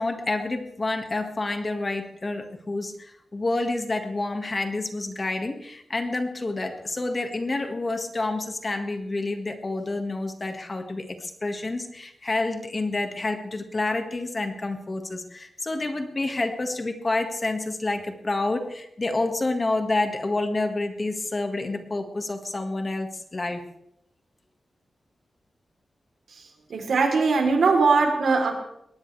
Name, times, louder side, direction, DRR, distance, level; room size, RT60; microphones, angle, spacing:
voice 1, 0.0-23.6, left 2 dB, 30° left, 6 dB, 1.7 m, -28 dB
voice 2, 26.7-28.5, right 4 dB, 75° right, 3 dB, 3.5 m, -20 dB
21.0 x 18.5 x 3.3 m, 0.80 s
wide cardioid pair, 135°, 0 cm